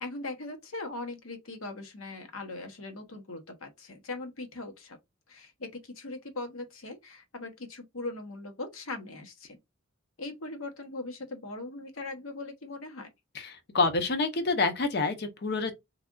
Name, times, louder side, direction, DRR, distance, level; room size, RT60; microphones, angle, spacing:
voice 1, 0.0-5.0 5.3-9.6 10.2-13.1, left 2 dB, 85° left, 1.0 m, -40 dB
voice 2, 13.7-15.7, left 3 dB, 55° left, 0.8 m, -27 dB
3.5 x 3.3 x 2.4 m
head